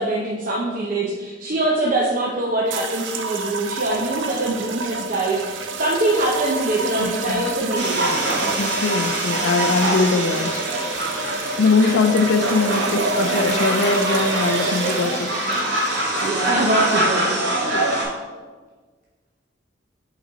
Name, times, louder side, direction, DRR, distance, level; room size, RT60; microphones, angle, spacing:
voice 1, 0.0-8.4 16.2-17.6, right 2 dB, 45° right, -3 dB, 0.7 m, -23 dB
sound 1, 2.7-17.0, right 3 dB, 80° right, 0.5 m, -29 dB
voice 2, 7.0-7.4 8.6-10.6 11.6-15.3, left 4 dB, 75° left, 8 dB, 0.4 m, -21 dB
sound 2, 7.7-18.1, right 1 dB, 65° right, 1.7 m, -24 dB
5.9 x 3.9 x 4.0 m, 1.4 s
head